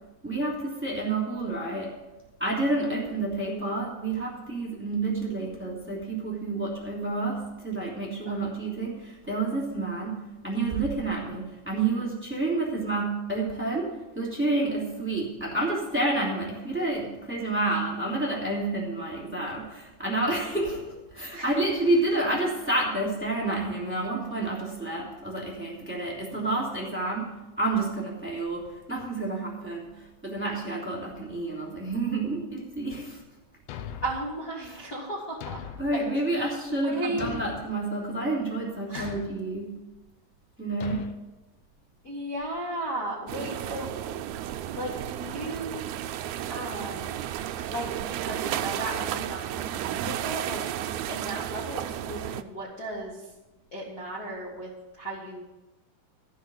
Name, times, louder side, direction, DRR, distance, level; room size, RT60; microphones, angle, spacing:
voice 1, 0.2-1.9 2.4-33.2 34.6-34.9 35.8-39.8 40.6-41.1, right 2 dB, 5° right, -5 dB, 2.8 m, -29 dB
Thump thud, 33.7-34.3 35.4-36.0 37.2-37.7 38.9-39.4 40.8-41.1, left 9 dB, 90° left, 2.3 m, -39 dB
voice 2, 34.0-35.6 35.9-36.5 36.8-37.4 38.9-39.1 42.0-44.3 44.8-45.8 46.5-47.2 47.7-50.6 51.1-53.2 53.7-55.5, right 1 dB, 35° left, -5 dB, 2.0 m, -35 dB
sound 1, 43.3-52.4, right 11 dB, 80° right, 1.9 m, -33 dB
14.0 x 5.7 x 7.8 m, 1.0 s
omnidirectional pair, 3.5 m